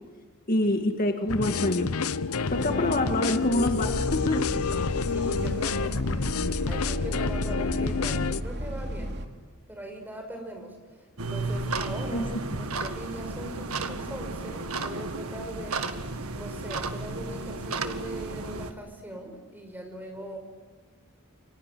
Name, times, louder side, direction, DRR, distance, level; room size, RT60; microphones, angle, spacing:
voice 1, 0.5-1.9 2.5-4.4 12.1-12.2, left 1 dB, 40° left, 4 dB, 1.9 m, -26 dB
sound 1, 1.3-8.4, left 4 dB, 80° left, 0.8 m, -28 dB
Bus, 2.5-9.3, equal, 50° right, 2.6 m, -34 dB
voice 2, 4.9-6.2 6.7-9.1 9.7-12.3 12.6-20.4, right 1 dB, 10° right, 4 dB, 5.6 m, -41 dB
sound 2, 11.2-18.7, right 3 dB, 80° right, 1.8 m, -33 dB
29.5 x 23.5 x 8.5 m, 1.3 s
head